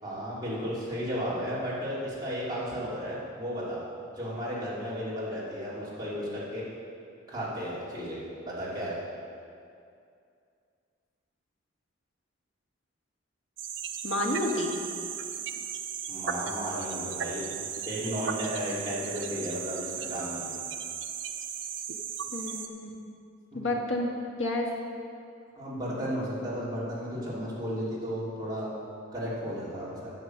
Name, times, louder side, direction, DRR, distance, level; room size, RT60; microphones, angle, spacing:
voice 1, 0.0-3.8 4.1-6.6 7.3-9.0 16.1-17.5 17.9-20.5 23.5-23.7 25.6-28.7 29.1-30.1, equal, 20° right, -9 dB, 3.2 m, -34 dB
sound 1, 13.6-22.7, right 7 dB, 70° right, 0.7 m, -36 dB
voice 2, 14.0-14.8 22.3-22.9 23.5-24.1 24.4-24.7, left 1 dB, 85° left, -1 dB, 1.7 m, -29 dB
12.0 x 7.2 x 6.6 m, 2.4 s
head